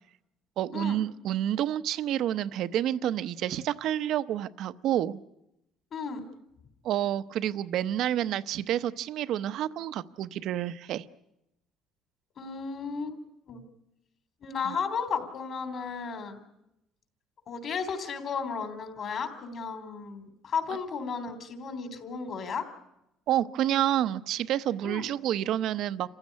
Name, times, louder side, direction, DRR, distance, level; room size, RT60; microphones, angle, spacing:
voice 1, 0.6-5.2 6.8-11.0 14.6-14.7 23.3-26.1, right 11 dB, 65° right, 14 dB, 0.8 m, -29 dB
voice 2, 5.9-6.2 12.4-13.2 13.5-13.6 14.4-16.4 17.5-22.7 24.8-25.0, left 5 dB, 45° left, 9 dB, 3.6 m, -34 dB
28.5 x 15.5 x 9.7 m, 0.87 s
cardioid pair, 130°, 0 cm